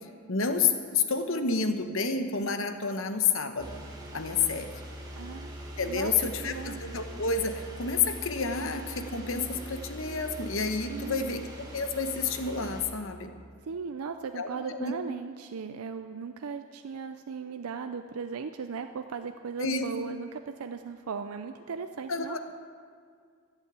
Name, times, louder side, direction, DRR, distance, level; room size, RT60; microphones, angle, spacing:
voice 1, 0.3-3.8 4.1-4.7 5.8-11.5 11.7-13.3 14.4-14.9 19.6-19.9 22.1-22.4, left 5 dB, 65° left, 7 dB, 1.1 m, -29 dB
sound 1, 3.6-12.8, equal, 20° right, 1.9 m, -42 dB
voice 2, 5.2-5.5 5.8-6.1 6.4-6.8 10.9-11.4 13.6-22.4, right 5 dB, 90° right, 8 dB, 0.5 m, -37 dB
14.5 x 8.2 x 8.1 m, 2.1 s
head